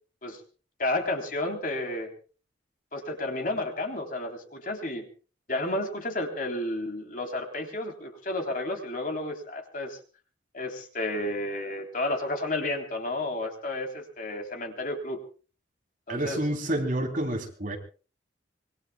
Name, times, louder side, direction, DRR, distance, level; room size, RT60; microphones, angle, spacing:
voice 1, 0.8-2.1 2.9-5.0 5.5-10.0 10.5-15.2 16.1-16.4, left 2 dB, 45° left, 3 dB, 3.5 m, -31 dB
voice 2, 16.1-17.8, right 1 dB, 45° right, 3 dB, 3.4 m, -29 dB
26.0 x 22.5 x 2.3 m, 0.37 s
head